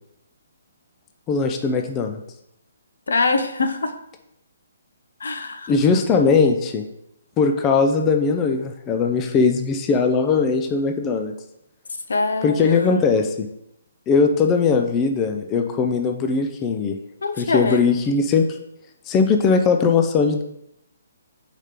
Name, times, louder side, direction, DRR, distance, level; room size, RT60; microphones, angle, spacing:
voice 1, 1.3-2.2 5.7-6.8 7.4-11.3 12.4-13.5 14.1-17.0 17.4-18.5 19.1-20.4, left 5 dB, 20° left, 5 dB, 0.5 m, -19 dB
voice 2, 3.1-3.9 5.2-5.7 12.1-13.0 17.2-17.8, left 3 dB, 70° left, 8 dB, 0.7 m, -23 dB
5.0 x 4.3 x 5.0 m, 0.79 s
figure-of-eight pair, 135°, 0 cm